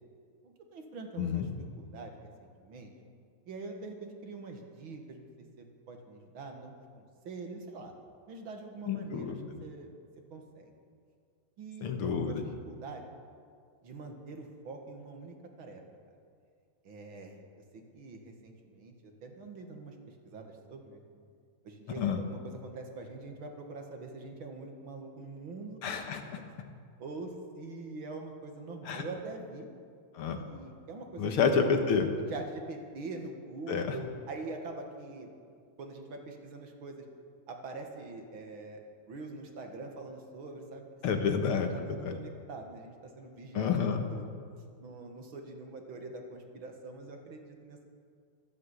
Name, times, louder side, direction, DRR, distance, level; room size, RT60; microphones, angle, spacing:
voice 1, 0.4-1.5 1.8-2.9 3.5-5.3 5.6-7.9 8.3-9.9 10.3-10.7 11.6-12.4 12.7-13.0 13.8-15.8 16.8-17.4 17.7-21.0 21.6-25.8 26.5-26.6 27.0-29.7 30.4-31.4 32.3-35.5 35.8-37.0 37.5-40.9 41.2-44.3 44.8-47.9, right 3 dB, 65° right, 3 dB, 2.6 m, -44 dB
voice 2, 8.9-9.6 11.8-12.4 22.0-22.2 25.8-26.4 28.9-29.0 30.1-30.4 31.2-32.1 33.7-33.9 41.0-42.2 43.5-44.0, left 6 dB, 80° left, 6 dB, 2.2 m, -29 dB
13.5 x 13.0 x 8.3 m, 2.2 s
omnidirectional pair, 2.4 m